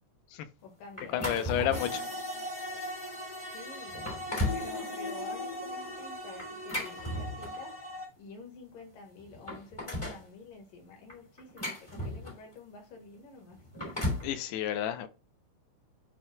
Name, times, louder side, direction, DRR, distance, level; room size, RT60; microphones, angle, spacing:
voice 1, 0.6-2.1 3.5-4.1 4.5-7.8 8.2-13.6, left 4 dB, 65° left, 3.1 m, -49 dB
sound 1, 1.0-2.0 2.6-2.7 3.4-3.5 3.9-4.7 6.4-7.7 8.8-8.9 9.2-10.2 11.1-12.5 13.5-14.3, left 1 dB, 10° left, 2.3 m, -35 dB
voice 2, 1.1-2.0 14.2-15.1, left 11 dB, 85° left, 2.8 m, -31 dB
sound 2, 1.7-8.1, left 1 dB, 35° left, 0.6 m, -39 dB
11.0 x 4.5 x 2.3 m
omnidirectional pair, 4.5 m